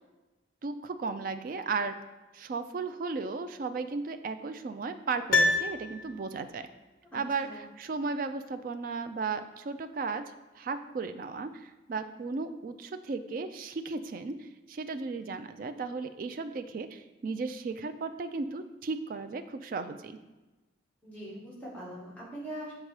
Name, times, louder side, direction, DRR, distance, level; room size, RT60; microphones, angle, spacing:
voice 1, 0.6-1.9 2.3-6.7 7.1-10.2 10.5-20.2, right 4 dB, 45° right, 9 dB, 0.3 m, -35 dB
Piano, 5.3-6.6 6.8-6.9, left 2 dB, 55° left, 0.6 m, -27 dB
voice 2, 7.1-7.6 21.0-22.7, right 1 dB, 10° left, -7 dB, 1.6 m, -42 dB
6.5 x 3.7 x 4.7 m, 1.1 s
head